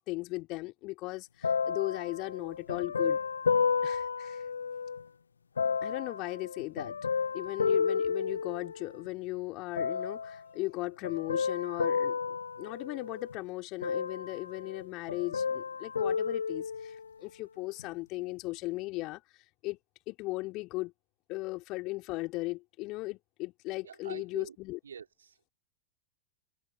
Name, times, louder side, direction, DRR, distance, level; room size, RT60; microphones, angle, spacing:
voice 1, 0.0-3.2 3.8-4.4 5.8-7.0 7.3-12.2 12.6-19.2 19.6-19.8 20.1-20.9 21.3-24.8, left 21 dB, 40° left, 3.1 m, -37 dB
sound 1, 1.4-5.0 5.6-9.1 9.8-10.4 11.0-13.4 13.8-14.8 15.1-17.1 17.8-17.9, left 6 dB, 75° left, 1.0 m, -32 dB
voice 2, 23.8-24.6 24.8-25.5, right 7 dB, 70° right, 3.9 m, -46 dB
figure-of-eight pair, 90°, 0 cm